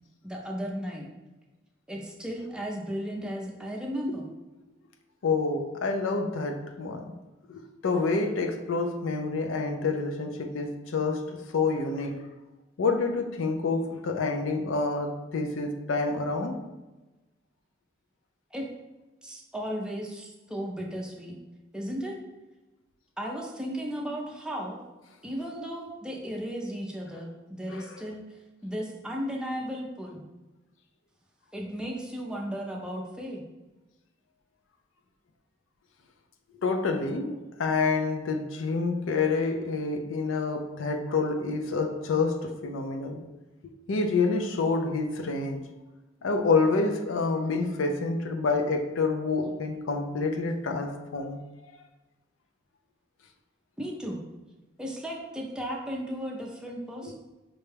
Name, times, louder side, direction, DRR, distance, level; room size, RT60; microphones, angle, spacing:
voice 1, 0.2-1.1 1.9-4.3 18.5-18.7 19.2-21.4 21.7-22.2 23.2-24.8 25.2-28.2 28.6-30.3 31.5-33.4 53.8-54.2 54.8-57.1, equal, 5° right, -1 dB, 0.5 m, -35 dB
voice 2, 5.2-7.1 7.5-12.2 12.8-16.6 27.7-28.0 36.6-43.2 43.9-45.6 46.2-51.4 51.7-51.8 57.0-57.1, left 3 dB, 90° left, 4 dB, 0.5 m, -28 dB
5.2 x 2.2 x 3.3 m, 1.1 s
head